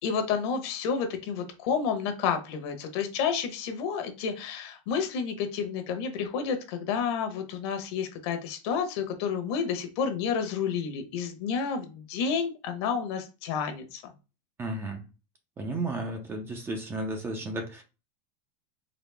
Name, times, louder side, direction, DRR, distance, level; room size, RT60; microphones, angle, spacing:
voice 1, 0.0-14.0, left 6 dB, 55° left, 6 dB, 1.0 m, -30 dB
voice 2, 14.6-15.0 15.6-17.8, right 2 dB, 15° right, 3 dB, 0.5 m, -33 dB
4.0 x 2.7 x 3.4 m, 0.30 s
supercardioid pair, 165°, 17 cm